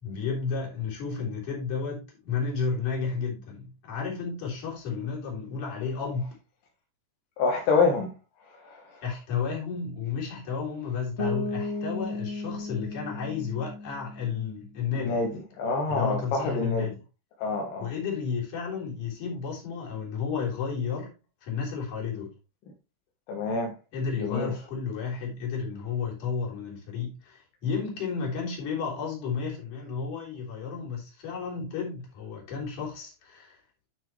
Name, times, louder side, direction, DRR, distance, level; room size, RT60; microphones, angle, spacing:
voice 1, 0.0-6.3 9.0-15.2 15.9-16.9 17.8-21.1 21.4-22.3 23.9-33.6, left 6 dB, 65° left, 4.9 m, -32 dB
voice 2, 7.4-8.1 8.5-9.0 14.9-16.9 17.4-17.9 23.3-23.7 24.1-24.6, left 3 dB, 90° left, 3.0 m, -27 dB
Bass guitar, 11.2-14.9, left 2 dB, 25° left, 1.9 m, -35 dB
9.7 x 6.3 x 3.2 m
omnidirectional pair, 3.8 m